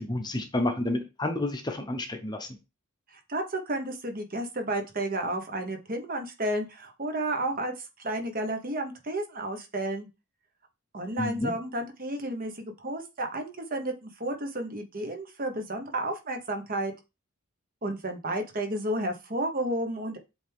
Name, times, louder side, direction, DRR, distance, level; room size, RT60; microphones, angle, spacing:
voice 1, 0.0-2.5 11.2-11.5, left 1 dB, 20° left, 6 dB, 0.8 m, -30 dB
voice 2, 3.3-10.1 10.9-16.9 17.8-20.2, right 1 dB, 40° right, 5 dB, 1.2 m, -32 dB
7.8 x 3.5 x 3.6 m, 0.26 s
head